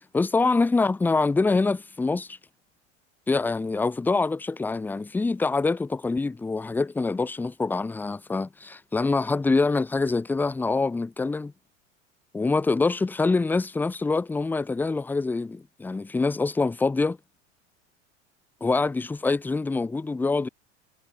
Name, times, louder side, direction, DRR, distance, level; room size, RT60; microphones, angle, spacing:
voice 1, 0.1-2.4 3.3-11.5 12.3-17.2 18.6-20.5, left 3 dB, 5° left, 0.4 m, -25 dB
figure-of-eight pair, 75°, 37 cm